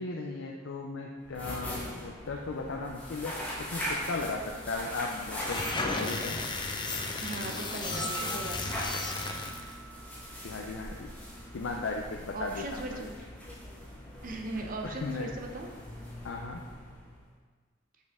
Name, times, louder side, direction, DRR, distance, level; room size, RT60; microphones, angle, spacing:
voice 1, 0.0-6.4 10.4-11.1 11.5-13.1 14.8-15.3 16.2-16.6, left 3 dB, 85° left, 0 dB, 0.5 m, -36 dB
sound 1, 1.2-17.3, equal, 10° left, 1.2 m, -41 dB
sound 2, 5.3-9.7, left 3 dB, 25° left, 0.5 m, -34 dB
voice 2, 7.2-8.7 12.3-13.1 14.2-15.7, right 2 dB, 45° right, 2 dB, 0.8 m, -39 dB
sound 3, 7.9-11.9 12.2-12.3, right 6 dB, 25° right, 1.3 m, -45 dB
6.4 x 5.3 x 3.6 m, 1.5 s
head